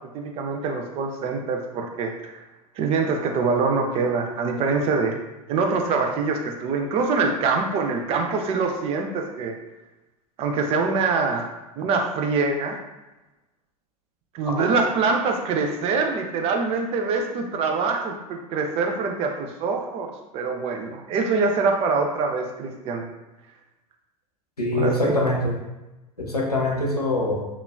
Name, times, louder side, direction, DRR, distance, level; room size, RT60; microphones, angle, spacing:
voice 1, 0.1-2.4 2.8-5.2 5.5-9.5 10.4-11.5 11.8-12.8 14.3-23.1 24.7-25.1, right 4 dB, 30° right, 3 dB, 0.4 m, -24 dB
voice 2, 24.6-25.6 26.2-27.5, left 1 dB, 90° left, -2 dB, 0.5 m, -23 dB
2.9 x 2.2 x 2.3 m, 1.0 s
figure-of-eight pair, 85°, 19 cm